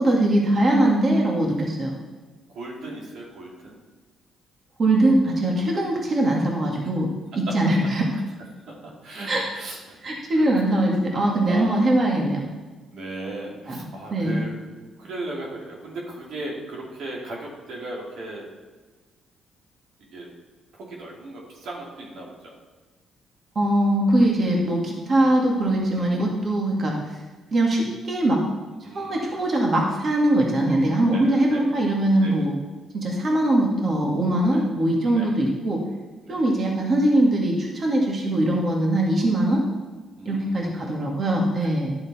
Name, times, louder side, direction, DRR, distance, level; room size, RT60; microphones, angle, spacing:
voice 1, 0.0-1.9 4.8-8.1 9.3-9.4 10.0-12.4 13.7-13.8 14.1-14.4 23.6-26.9 27.5-28.4 28.9-32.5 32.9-35.8 36.3-39.6 40.3-42.0, right 1 dB, 45° right, -1 dB, 2.0 m, -21 dB
voice 2, 2.5-3.8 9.0-10.8 11.4-11.8 12.9-14.5 15.0-18.4 20.1-20.3 20.7-22.3 28.8-29.4 31.1-31.6 32.2-32.5 34.5-34.6 35.1-35.3 36.2-36.5 40.2-41.0 41.6-41.7, right 2 dB, 75° right, -2 dB, 2.4 m, -37 dB
11.5 x 7.0 x 4.3 m, 1.3 s
cardioid pair, 90°, 0 cm